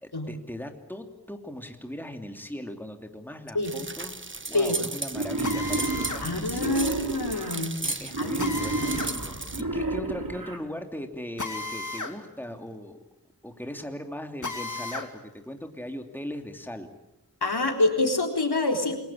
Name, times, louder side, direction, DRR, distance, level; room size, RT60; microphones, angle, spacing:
voice 1, 0.0-4.2 4.5-6.8 7.8-13.0 13.4-16.9, left 1 dB, 5° left, 5 dB, 2.9 m, -38 dB
sound 1, 3.6-9.6, right 3 dB, 30° right, 1.2 m, -35 dB
Wild animals, 5.1-7.6 8.1-10.6, right 2 dB, 60° right, 3.7 m, -31 dB
Drill, 5.4-6.3 8.4-9.2 11.4-12.2 12.5-12.6 14.4-15.1, left 3 dB, 50° left, 2.9 m, -34 dB
voice 2, 6.2-7.8 8.2-8.7 17.4-19.0, left 2 dB, 80° left, 3 dB, 4.0 m, -26 dB
29.0 x 22.0 x 8.7 m, 0.90 s
wide cardioid pair, 50°, 38 cm